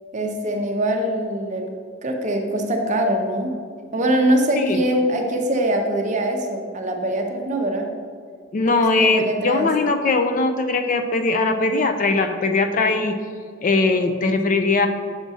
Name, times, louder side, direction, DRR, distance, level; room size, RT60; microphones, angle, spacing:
voice 1, 0.1-1.7 2.0-3.6 3.9-7.9 8.6-9.7, right 1 dB, 35° right, 2 dB, 0.6 m, -23 dB
voice 2, 8.5-13.2 13.6-14.9, left 3 dB, 40° left, 7 dB, 0.3 m, -20 dB
7.1 x 5.9 x 2.7 m, 2.1 s
head